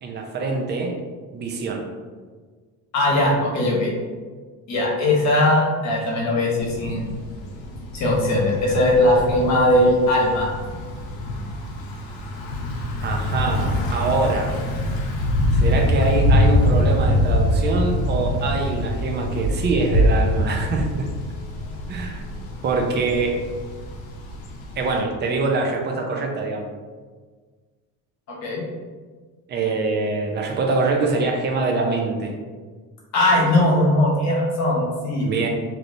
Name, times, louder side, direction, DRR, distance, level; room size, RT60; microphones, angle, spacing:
voice 1, 0.0-0.9 1.3-1.8 13.0-14.5 15.5-21.1 21.9-22.2 22.6-23.4 24.8-26.6 29.5-32.3 35.2-35.5, right 3 dB, 30° right, 2 dB, 0.5 m, -24 dB
voice 2, 2.9-3.9 4.7-7.1 7.9-10.5 28.3-28.6 33.1-35.3, left 1 dB, 55° left, -4 dB, 1.1 m, -19 dB
Thunder / Bicycle, 6.6-25.0, left 1 dB, 90° left, 0.7 m, -24 dB
3.1 x 2.7 x 2.6 m, 1.5 s
cardioid pair, 135°, 34 cm